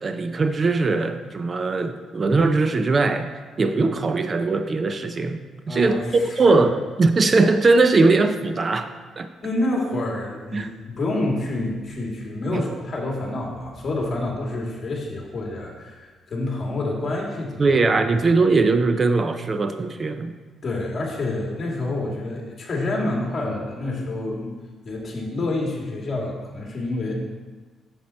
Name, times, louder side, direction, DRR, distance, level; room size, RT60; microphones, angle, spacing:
voice 1, 0.0-3.3 3.6-5.4 5.7-8.9 9.2-9.3 10.5-10.7 12.5-12.6 17.6-20.3, right 3 dB, 35° right, 8 dB, 0.5 m, -20 dB
voice 2, 5.7-6.2 6.5-6.6 9.4-17.7 18.1-18.2 20.6-24.5 24.8-27.1, left 2 dB, 40° left, -1 dB, 2.3 m, -28 dB
7.4 x 7.4 x 4.4 m, 1.4 s
cardioid pair, 90°, 0 cm